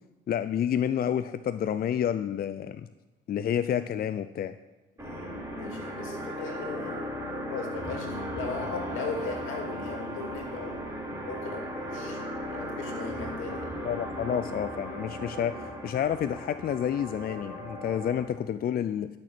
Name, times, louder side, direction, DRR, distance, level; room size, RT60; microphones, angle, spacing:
voice 1, 0.3-2.8 3.3-4.5 13.8-19.1, left 9 dB, 50° left, 12 dB, 0.4 m, -29 dB
voice 2, 5.0-7.1 7.5-11.0 11.2-13.7, left 4 dB, 90° left, 1 dB, 2.6 m, -38 dB
sound 1, 5.0-18.3, equal, 15° right, 4.1 m, -37 dB
12.0 x 6.4 x 6.1 m, 1.1 s
cardioid pair, 90°, 20 cm